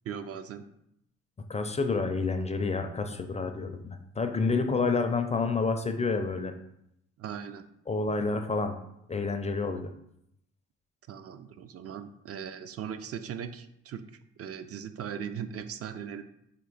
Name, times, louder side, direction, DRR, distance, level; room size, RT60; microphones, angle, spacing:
voice 1, 0.0-0.6 7.2-7.6 11.1-14.0 14.4-16.2, right 8 dB, 50° right, 9 dB, 0.4 m, -39 dB
voice 2, 1.5-6.5 7.9-8.8 9.1-9.9, left 4 dB, 20° left, 6 dB, 0.4 m, -29 dB
4.4 x 2.7 x 3.8 m, 0.76 s
cardioid pair, 90°, 30 cm